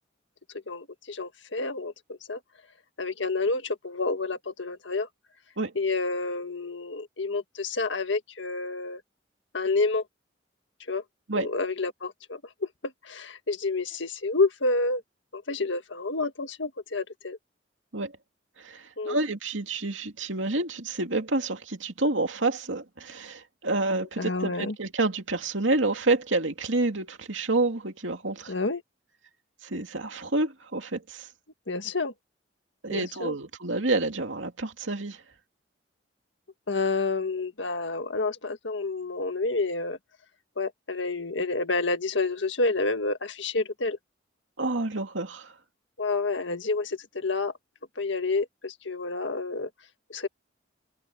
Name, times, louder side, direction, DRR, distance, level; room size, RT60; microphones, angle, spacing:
voice 1, 0.7-2.4 3.0-5.1 5.7-9.0 9.5-10.0 10.9-11.0 11.3-15.0 15.3-17.4 19.0-19.2 24.2-24.7 28.5-28.8 31.7-32.1 32.9-33.3 36.7-40.0 40.6-44.0 46.0-47.5 48.0-49.7 50.1-50.3, left 3 dB, 75° left, 1.7 m, -29 dB
voice 2, 18.6-28.5 29.6-31.3 32.8-35.2 44.6-45.5, right 2 dB, 85° right, 2.6 m, -28 dB
head